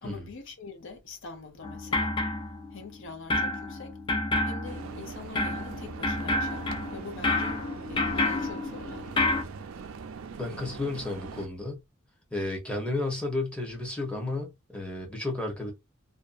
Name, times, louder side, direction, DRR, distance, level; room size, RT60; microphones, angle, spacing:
voice 1, 0.0-2.2 2.7-4.0 4.4-7.6 7.9-9.1, left 4 dB, 65° left, 0.7 m, -44 dB
sound 1, 1.6-3.0 3.3-9.4, left 2 dB, 25° left, 0.4 m, -29 dB
sound 2, 4.6-11.5, right 5 dB, 80° right, 0.4 m, -42 dB
voice 2, 10.4-11.8 12.3-15.7, left 2 dB, 5° left, 0.8 m, -32 dB
2.6 x 2.2 x 2.4 m
head